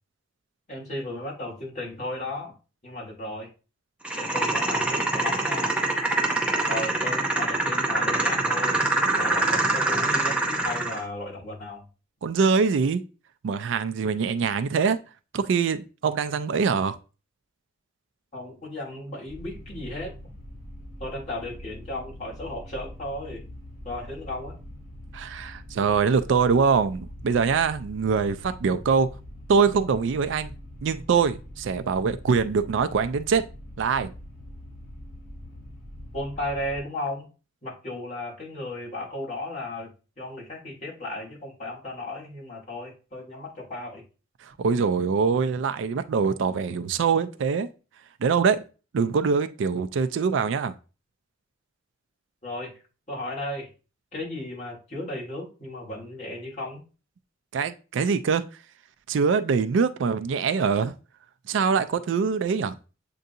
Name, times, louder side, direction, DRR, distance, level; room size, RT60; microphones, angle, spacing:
voice 1, 0.7-2.5 2.8-3.5 4.1-5.8 6.7-8.8 9.1-11.8 18.3-20.1 21.0-23.4 23.8-24.6 36.1-37.3 37.6-39.9 40.2-44.0 52.4-52.7 53.1-53.7 54.1-56.8, left 1 dB, 35° left, 1.8 m, -35 dB
sound 1, 4.0-11.0, right 2 dB, 5° right, 0.6 m, -25 dB
voice 2, 12.2-13.0 13.4-15.0 15.3-17.0 25.1-29.1 29.5-30.5 30.8-33.4 33.8-34.1 44.4-47.7 48.2-48.6 48.9-50.7 57.5-58.4 59.1-60.9 61.5-62.8, right 5 dB, 70° right, 0.4 m, -23 dB
sound 2, 19.3-36.8, equal, 70° left, 2.1 m, -43 dB
7.6 x 2.6 x 2.6 m
head